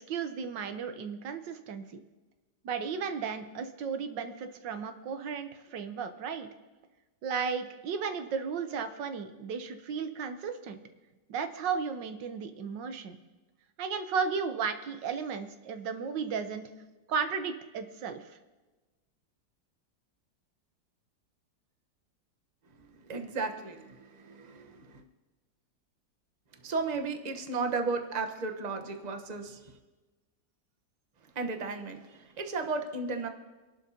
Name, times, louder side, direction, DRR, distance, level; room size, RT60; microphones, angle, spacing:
voice 1, 0.0-2.0 2.6-6.5 7.2-10.8 11.3-13.2 13.8-16.7 17.1-18.4, right 6 dB, 75° right, 8 dB, 1.5 m, -34 dB
voice 2, 23.0-25.0 26.6-29.6 31.3-33.3, right 4 dB, 30° right, 5 dB, 0.9 m, -34 dB
27.0 x 11.5 x 2.8 m, 1.2 s
omnidirectional pair, 2.0 m